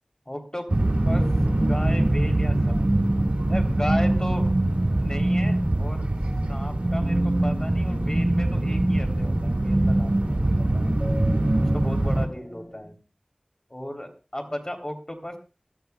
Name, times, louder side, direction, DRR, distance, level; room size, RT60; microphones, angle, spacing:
voice 1, 0.2-0.7 1.0-1.3 1.7-2.9 3.5-4.5 5.0-6.1 6.5-10.9 11.6-13.0 13.7-15.4, left 1 dB, 30° left, 3 dB, 3.5 m, -35 dB
sound 1, 0.7-12.3, right 1 dB, 80° right, 1.9 m, -23 dB
sound 2, 1.2-12.8, equal, 10° left, 2.8 m, -42 dB
22.0 x 13.0 x 2.3 m, 0.34 s
wide cardioid pair, 40°, 2 cm